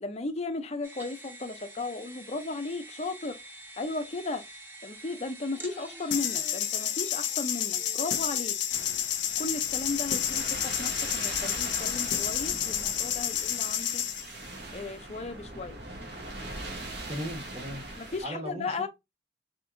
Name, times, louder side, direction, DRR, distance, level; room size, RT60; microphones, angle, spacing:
voice 1, 0.0-3.4 3.8-4.4 4.8-8.6 9.4-14.0 14.7-15.8 18.0-18.9, left 3 dB, 35° left, 0.5 m, -35 dB
sound 1, 0.8-10.8, right 1 dB, 10° right, 0.6 m, -48 dB
sound 2, 6.1-14.2, left 10 dB, 80° left, 0.6 m, -30 dB
sound 3, 8.7-18.2, right 2 dB, 65° right, 1.1 m, -41 dB
voice 2, 17.1-17.8 18.2-18.9, equal, 35° right, 1.1 m, -37 dB
4.3 x 2.9 x 2.5 m
head